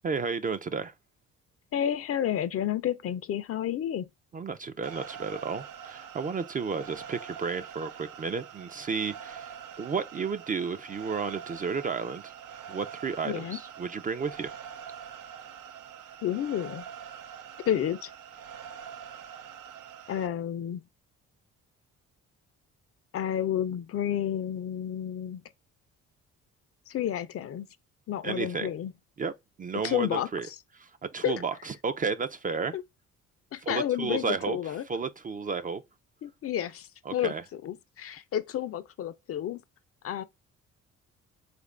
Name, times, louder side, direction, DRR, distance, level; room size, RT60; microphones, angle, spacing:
voice 1, 0.0-0.9 4.3-12.3 12.7-14.5 28.2-28.7 29.2-29.3 29.6-30.5 30.7-32.8 33.6-35.8 37.1-37.4, right 5 dB, 30° right, 0.4 m, -32 dB
voice 2, 1.7-4.1 13.2-13.6 16.2-16.8 17.7-18.1 20.1-20.8 23.1-25.4 26.9-27.7 28.1-28.9 29.8-30.3 31.2-31.4 32.7-32.8 33.5-34.9 36.2-39.6 40.0-40.2, left 10 dB, 50° left, 0.4 m, -30 dB
sound 1, 4.8-20.3, right 8 dB, 85° right, 0.6 m, -44 dB
3.5 x 2.5 x 3.2 m
cardioid pair, 90°, 30 cm